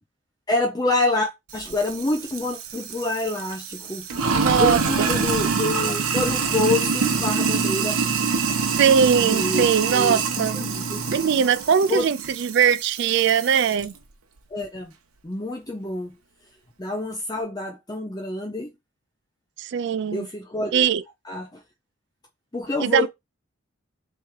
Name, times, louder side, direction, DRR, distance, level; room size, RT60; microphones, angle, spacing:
voice 1, 0.5-4.1 4.6-8.0 9.2-9.6 9.9-11.5 11.9-12.1 14.5-14.9 15.2-16.1 16.8-18.7 20.1-20.9 21.2-21.6 22.5-23.1, left 2 dB, 20° left, 0.5 m, -27 dB
Sink (filling or washing), 1.5-13.8, right 5 dB, 90° right, 0.9 m, -25 dB
voice 2, 4.3-5.1 8.7-10.6 11.1-13.9 19.6-20.3 20.7-21.0 22.8-23.1, right 7 dB, 55° right, 0.3 m, -21 dB
3.5 x 3.1 x 4.6 m
head